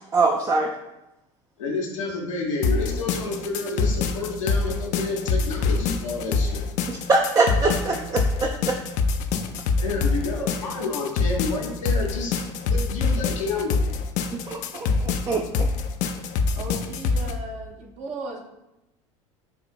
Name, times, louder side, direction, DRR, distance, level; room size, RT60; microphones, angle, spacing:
voice 1, 0.1-0.7 7.1-8.8 14.5-15.4, right 3 dB, 20° right, 1 dB, 0.4 m, -23 dB
voice 2, 1.6-6.7 9.8-12.4 12.6-13.8, left 3 dB, 80° left, -2 dB, 0.8 m, -29 dB
sound 1, 2.6-17.3, left 4 dB, 50° left, 0.4 m, -25 dB
voice 3, 7.7-8.1 16.5-18.4, right 2 dB, 45° right, 1 dB, 0.7 m, -36 dB
6.9 x 2.5 x 2.2 m, 0.92 s
hypercardioid pair, 75°, 17 cm